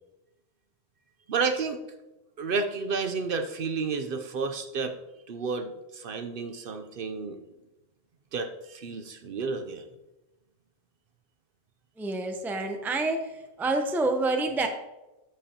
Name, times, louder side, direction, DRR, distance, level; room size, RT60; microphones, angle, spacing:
voice 1, 1.3-1.8 2.4-5.0 5.3-7.4 8.3-9.8, right 4 dB, 60° right, 7 dB, 0.8 m, -31 dB
voice 2, 12.0-13.3 13.6-14.7, right 2 dB, ahead, 5 dB, 0.5 m, -27 dB
14.0 x 5.0 x 2.8 m, 1.0 s
omnidirectional pair, 1.1 m